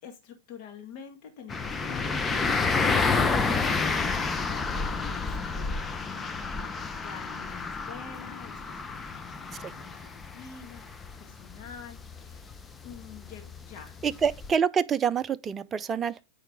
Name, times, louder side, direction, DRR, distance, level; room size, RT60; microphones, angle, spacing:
voice 1, 0.0-2.2 2.5-12.5 12.8-14.3 16.1-16.2, left 7 dB, 50° left, 1.8 m, -47 dB
sound 1, 1.5-14.5, left 4 dB, 15° left, 0.7 m, -30 dB
voice 2, 14.0-16.2, right 7 dB, 25° right, 0.5 m, -26 dB
9.1 x 4.8 x 3.6 m
hypercardioid pair, 110°, 0 cm